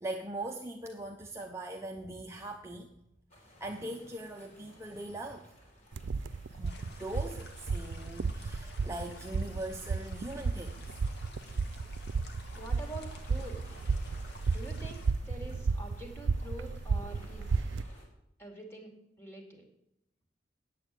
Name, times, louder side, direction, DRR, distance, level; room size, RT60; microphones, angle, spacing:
voice 1, 0.0-2.9 3.6-5.5 6.5-10.8, right 1 dB, 15° right, 1 dB, 0.7 m, -41 dB
sound 1, 3.3-18.1, left 1 dB, 40° left, 3.6 m, -57 dB
sound 2, 5.9-17.8, right 4 dB, 90° right, 0.5 m, -33 dB
sound 3, 6.6-15.1, left 3 dB, 60° left, 1.7 m, -54 dB
voice 2, 12.5-13.6 14.5-17.8 18.4-18.9 19.2-19.6, right 2 dB, 15° left, 2 dB, 2.5 m, -46 dB
9.2 x 7.9 x 8.3 m, 0.80 s
head